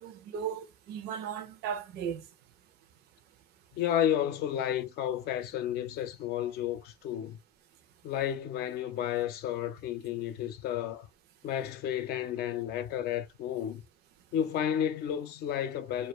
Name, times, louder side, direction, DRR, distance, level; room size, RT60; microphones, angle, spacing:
voice 1, 0.0-2.2, right 8 dB, 75° right, 0.5 m, -36 dB
voice 2, 3.7-7.4 8.0-11.1 11.4-13.8 14.3-16.1, left 10 dB, 75° left, 0.5 m, -32 dB
2.3 x 2.2 x 3.0 m
cardioid pair, 110°, 17 cm